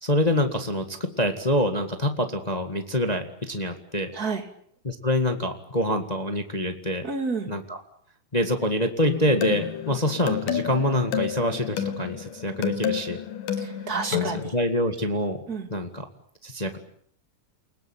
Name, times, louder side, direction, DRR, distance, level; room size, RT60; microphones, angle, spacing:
voice 1, 0.0-4.1 4.8-7.0 7.5-7.8 8.3-13.2 14.1-15.4 15.7-16.1 16.4-16.8, left 1 dB, 25° left, 6 dB, 0.8 m, -26 dB
voice 2, 7.0-7.5 13.6-14.5 15.5-15.7, right 4 dB, 25° right, 6 dB, 2.9 m, -30 dB
sound 1, 9.0-14.5, left 9 dB, 70° left, 3.2 m, -30 dB
29.5 x 19.0 x 8.8 m, 0.64 s
omnidirectional pair, 4.2 m